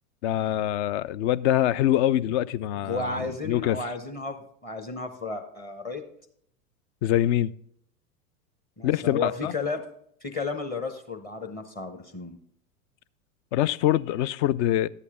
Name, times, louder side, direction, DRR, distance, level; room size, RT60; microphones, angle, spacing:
voice 1, 0.2-3.2 3.4-3.8 7.0-7.5 8.8-9.5 13.5-14.9, left 12 dB, 50° left, 0.5 m, -24 dB
voice 2, 2.8-6.0 8.8-9.8 10.2-12.4, left 3 dB, 20° left, 0.9 m, -33 dB
11.0 x 8.4 x 3.6 m
hypercardioid pair, 95°, 45 cm